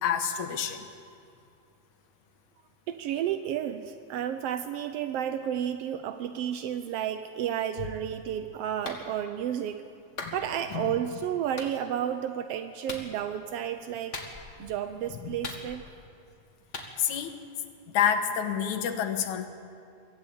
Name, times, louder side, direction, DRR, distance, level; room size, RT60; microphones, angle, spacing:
voice 1, 0.0-0.9 10.2-10.3 10.7-11.0 17.0-17.4 17.9-19.5, left 8 dB, 75° left, 7 dB, 2.6 m, -28 dB
voice 2, 2.9-9.9 10.3-14.2 14.6-15.8, right 10 dB, 80° right, 9 dB, 1.4 m, -32 dB
Clapping, 8.8-9.0 10.2-10.4 11.6-11.7 12.9-13.1 14.1-14.6 15.4-16.0 16.7-16.9, left 3 dB, 30° left, 1.7 m, -38 dB
23.5 x 15.0 x 8.8 m, 2.5 s
omnidirectional pair, 3.6 m